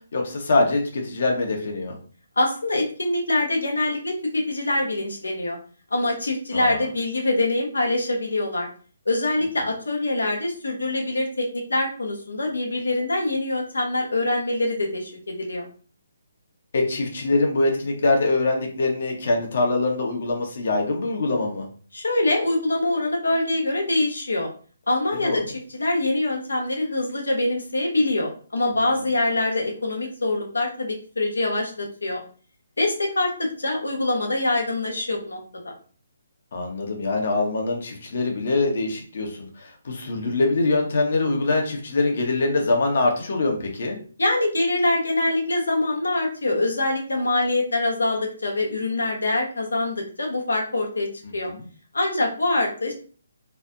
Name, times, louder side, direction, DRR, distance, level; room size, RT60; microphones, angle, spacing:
voice 1, 0.1-1.9 6.5-6.8 16.7-21.7 25.2-25.5 28.7-29.0 36.5-44.0 51.2-51.7, left 2 dB, 60° left, 1 dB, 1.1 m, -24 dB
voice 2, 2.4-5.6 5.9-8.7 9.1-15.6 21.9-24.5 24.9-25.4 25.7-32.2 32.8-35.7 44.2-51.1 51.3-51.5 51.9-52.9, left 2 dB, 90° left, 1 dB, 1.1 m, -24 dB
3.2 x 2.1 x 2.6 m, 0.41 s
hypercardioid pair, 150°, 0 cm